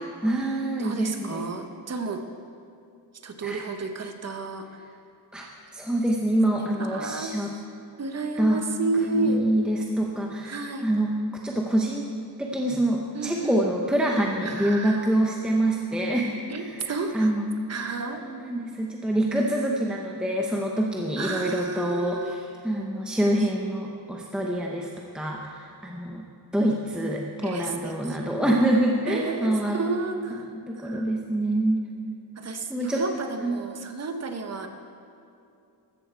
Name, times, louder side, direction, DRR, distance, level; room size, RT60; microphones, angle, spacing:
voice 1, 0.2-1.5 3.4-3.6 5.3-5.5 5.7-7.5 8.4-8.6 9.1-10.6 10.8-11.1 11.4-12.1 12.4-16.7 17.1-17.6 18.2-24.9 25.1-26.2 26.5-29.8 30.8-31.9 32.7-33.0 33.4-33.6, right 1 dB, ahead, -1 dB, 0.8 m, -25 dB
voice 2, 0.8-2.2 3.2-4.8 6.5-7.6 8.0-9.4 10.4-10.9 13.1-13.7 14.4-15.1 16.5-17.3 17.7-18.2 21.2-22.5 23.4-23.5 27.4-28.3 29.1-31.1 32.4-34.7, right 3 dB, 40° right, 6 dB, 1.1 m, -32 dB
14.5 x 13.5 x 4.6 m, 2.6 s
wide cardioid pair, 155°, 41 cm